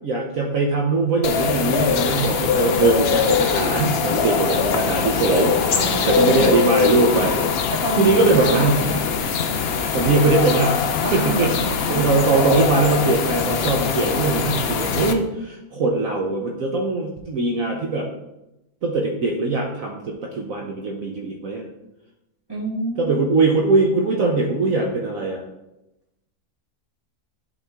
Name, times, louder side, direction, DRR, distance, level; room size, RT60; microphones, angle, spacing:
voice 1, 0.0-8.9 9.9-18.1 18.8-21.7 23.0-25.4, right 3 dB, 60° right, 0 dB, 1.2 m, -21 dB
sound 1, 1.2-15.1, left 6 dB, 60° left, 0.6 m, -22 dB
voice 2, 5.7-6.5 7.7-9.1 11.0-12.1 12.4-12.5 22.5-23.3, right 1 dB, 15° right, -5 dB, 2.2 m, -27 dB
11.0 x 4.3 x 3.5 m, 0.94 s
omnidirectional pair, 1.7 m